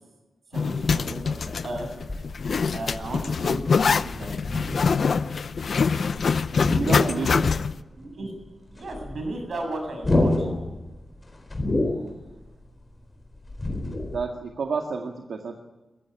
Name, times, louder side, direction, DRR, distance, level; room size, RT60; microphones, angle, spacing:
Zipper (clothing), 0.5-7.8, left 5 dB, 60° left, 0.7 m, -24 dB
voice 1, 0.5-1.9 2.7-5.0 6.9-7.4 7.9-8.3 8.7-10.5, right 1 dB, 60° right, 4 dB, 7.7 m, -35 dB
sound 1, 1.5-6.2 6.5-7.8 8.1-8.2 8.4-14.2, left 2 dB, 20° left, 4.0 m, -29 dB
voice 2, 6.7-7.4 14.1-15.6, right 5 dB, 85° right, 2 dB, 2.0 m, -30 dB
22.5 x 15.5 x 9.8 m, 1.1 s
wide cardioid pair, 140°, 0 cm